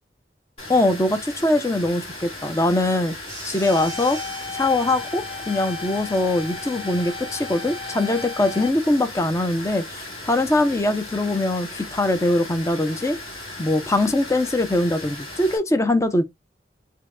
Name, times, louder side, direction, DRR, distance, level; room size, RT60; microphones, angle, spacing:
Water, 0.6-15.6, left 2 dB, 30° left, 2.4 m, -37 dB
voice 1, 0.7-3.1 3.4-4.2 4.5-13.2 13.6-16.2, left 2 dB, 15° left, 0.5 m, -22 dB
Bathtub (filling or washing), 3.3-14.4, right 2 dB, 15° right, 3.4 m, -47 dB
sound 1, 3.6-8.7, left 4 dB, 90° left, 0.9 m, -35 dB
7.2 x 2.8 x 2.4 m
head